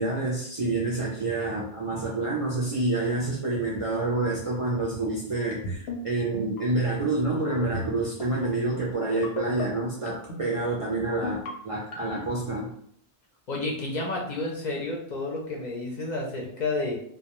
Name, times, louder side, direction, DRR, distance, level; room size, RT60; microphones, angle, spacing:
voice 1, 0.0-12.7, right 2 dB, 50° right, -5 dB, 0.4 m, -28 dB
sound 1, 5.5-6.0 6.3-6.6 7.4-7.9 8.2-8.5 9.2-9.6 10.1-10.4 11.1-11.5 11.9-12.3, left 2 dB, 85° left, 0.8 m, -33 dB
voice 2, 13.5-17.0, left 2 dB, 55° left, -1 dB, 0.5 m, -30 dB
2.2 x 2.1 x 2.9 m, 0.67 s
omnidirectional pair, 1.1 m